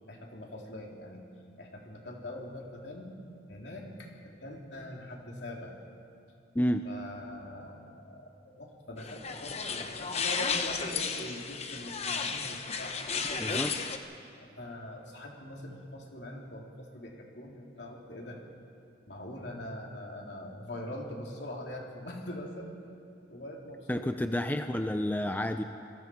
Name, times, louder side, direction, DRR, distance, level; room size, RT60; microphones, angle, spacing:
voice 1, 0.1-1.3 1.6-3.1 3.5-5.8 6.9-13.6 14.3-18.4 19.1-22.7 23.3-24.0, left 1 dB, 65° left, -1 dB, 3.4 m, -43 dB
sound 1, 9.0-14.0, left 5 dB, 35° left, 1.1 m, -33 dB
voice 2, 13.4-13.8 23.9-25.6, left 1 dB, 10° left, 7 dB, 0.5 m, -30 dB
28.0 x 22.0 x 4.7 m, 2.6 s
head